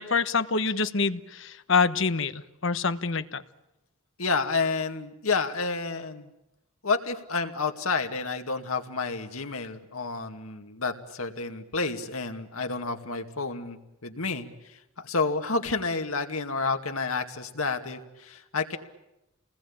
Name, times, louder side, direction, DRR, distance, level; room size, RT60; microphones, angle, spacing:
voice 1, 0.0-3.4, left 4 dB, 60° left, 12 dB, 1.2 m, -26 dB
voice 2, 4.2-6.3 6.8-18.8, left 4 dB, 90° left, 6 dB, 2.3 m, -30 dB
28.5 x 20.5 x 8.8 m, 0.91 s
head